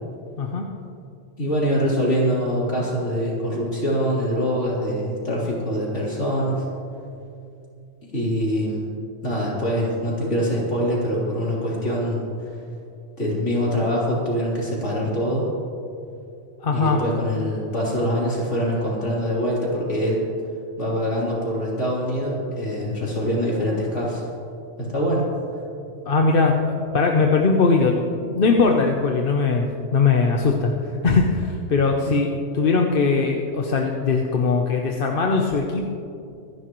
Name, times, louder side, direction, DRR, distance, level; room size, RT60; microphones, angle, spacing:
voice 1, 1.4-6.6 8.1-8.9 9.2-12.3 13.2-15.5 16.7-20.3 20.8-24.2 24.8-25.3 32.0-32.1, equal, 70° left, -5 dB, 3.7 m, -24 dB
voice 2, 16.6-17.0 26.1-35.9, left 4 dB, 50° left, 1 dB, 0.9 m, -20 dB
25.0 x 11.0 x 3.1 m, 2.6 s
omnidirectional pair, 1.3 m